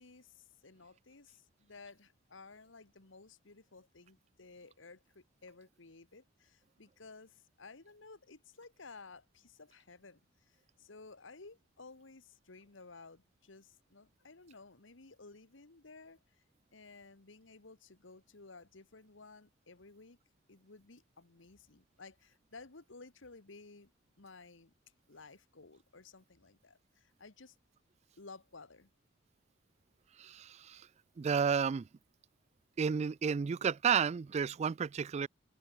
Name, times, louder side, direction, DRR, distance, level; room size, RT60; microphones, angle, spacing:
voice 1, 0.0-16.4 16.7-20.2 20.5-23.9 24.2-24.7 25.1-27.6 28.2-28.9, left 3 dB, 70° left, 1.6 m, -55 dB
voice 2, 30.2-30.9 31.2-31.9 32.8-35.3, right 6 dB, 35° right, 0.3 m, -32 dB
open air
head